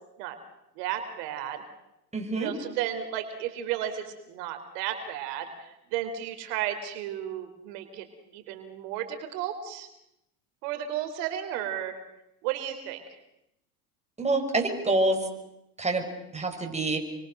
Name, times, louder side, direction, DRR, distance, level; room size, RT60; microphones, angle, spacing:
voice 1, 0.8-1.6 2.3-8.1 8.3-9.9 10.6-12.0 12.4-13.0, right 11 dB, 70° right, 8 dB, 3.6 m, -33 dB
voice 2, 2.1-2.5 14.2-15.3 15.8-16.1 16.3-17.0, right 2 dB, 15° right, 3 dB, 6.1 m, -26 dB
29.0 x 24.0 x 6.6 m, 0.86 s
hypercardioid pair, 95°, 48 cm